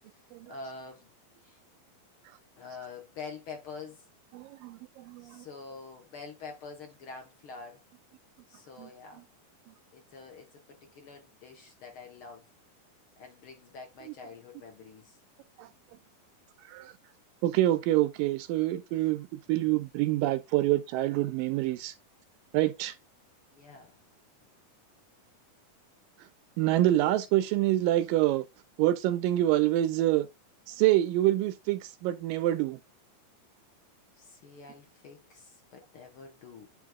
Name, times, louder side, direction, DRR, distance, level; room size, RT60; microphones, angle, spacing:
voice 1, 0.5-1.1 1.4-1.6 2.6-4.0 5.2-7.8 8.5-9.2 9.9-12.5 13.2-15.2 18.6-18.7 23.5-23.9 34.2-36.7, left 4 dB, 55° left, 1.5 m, -46 dB
voice 2, 4.3-5.4 8.8-8.9 14.1-14.2 15.6-15.7 16.7-16.9 17.4-21.9 22.5-23.0 26.6-28.4 28.8-30.3 30.7-32.8, right 15 dB, 80° right, 2.1 m, -26 dB
9.3 x 3.4 x 3.5 m
omnidirectional pair, 4.2 m